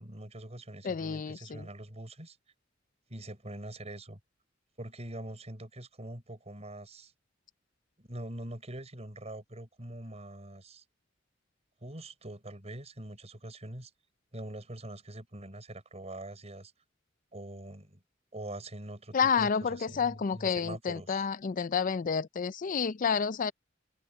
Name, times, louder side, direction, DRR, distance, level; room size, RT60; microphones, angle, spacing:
voice 1, 0.0-2.4 3.1-4.2 4.8-7.1 8.0-10.8 11.8-13.9 14.3-16.7 17.3-18.0 18.3-21.2, right 1 dB, 35° right, 5.7 m, -44 dB
voice 2, 0.8-1.7 19.1-23.5, left 6 dB, 45° left, 0.4 m, -30 dB
open air
head